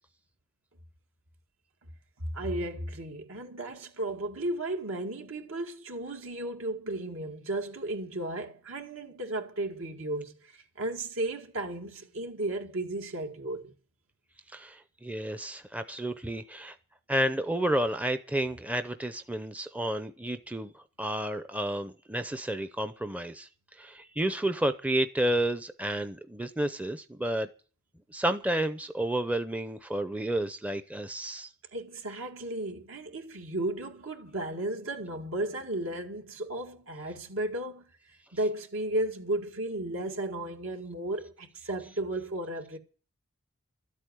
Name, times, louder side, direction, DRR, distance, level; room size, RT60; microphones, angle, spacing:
voice 1, 2.3-10.3 10.8-13.7 31.7-37.8 38.3-42.8, right 1 dB, 70° right, 2.1 m, -34 dB
voice 2, 14.5-16.8 17.1-23.5 23.8-27.5 28.1-31.5, right 1 dB, 5° right, 0.6 m, -31 dB
13.0 x 8.4 x 9.3 m
head